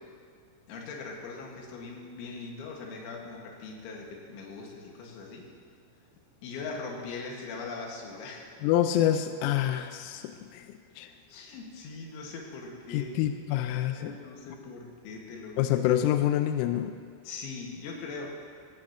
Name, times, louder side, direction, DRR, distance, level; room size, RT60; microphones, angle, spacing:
voice 1, 0.7-5.4 6.4-8.5 11.3-13.2 14.0-15.6 17.2-18.3, left 4 dB, 70° left, -1 dB, 3.9 m, -41 dB
voice 2, 8.6-11.1 12.9-14.1 15.6-17.0, left 11 dB, 90° left, 8 dB, 3.3 m, -27 dB
17.0 x 17.0 x 3.0 m, 2.2 s
omnidirectional pair, 5.9 m